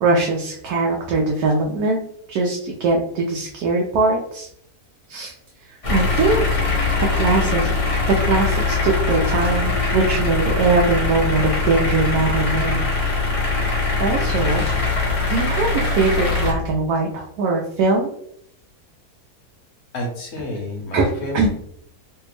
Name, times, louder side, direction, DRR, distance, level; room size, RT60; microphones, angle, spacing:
voice 1, 0.0-2.0 2.3-4.5 5.1-5.3 5.9-6.6 7.1-7.7 8.2-12.8 14.0-14.6 15.3-18.1 20.9-21.1 21.3-21.5, right 3 dB, 75° right, -1 dB, 1.1 m, -21 dB
sound 1, 5.8-16.5, left 3 dB, 35° left, 0.5 m, -21 dB
voice 2, 19.9-21.4, left 1 dB, 55° left, 0 dB, 1.2 m, -29 dB
3.3 x 2.6 x 3.2 m, 0.69 s
omnidirectional pair, 1.7 m